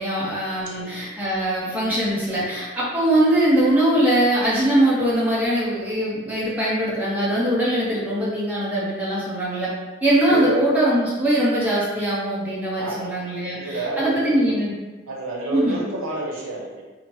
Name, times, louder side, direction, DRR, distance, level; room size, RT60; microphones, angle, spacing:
voice 1, 0.0-9.7 10.0-14.7 15.5-15.8, right 1 dB, 10° right, -9 dB, 0.9 m, -21 dB
voice 2, 0.7-1.0 3.1-3.3 10.3-10.6 12.8-13.1 13.5-14.6 15.1-16.8, right 1 dB, 85° right, -2 dB, 0.7 m, -30 dB
4.2 x 2.1 x 3.0 m, 1.3 s
head